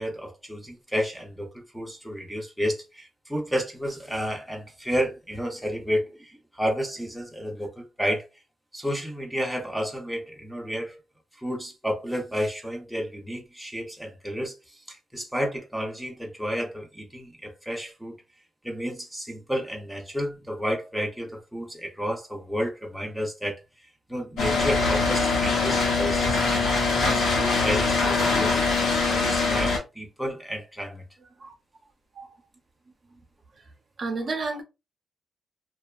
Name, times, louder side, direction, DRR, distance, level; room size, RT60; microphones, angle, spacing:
voice 1, 0.0-8.3 8.7-11.0 11.3-18.2 18.6-28.7 29.1-31.1, equal, ahead, 0.6 m, -31 dB
sound 1, 24.4-29.8, left 4 dB, 90° left, 0.9 m, -23 dB
voice 2, 34.0-34.6, right 3 dB, 45° right, 0.5 m, -32 dB
2.6 x 2.3 x 2.3 m
cardioid pair, 125°, 0 cm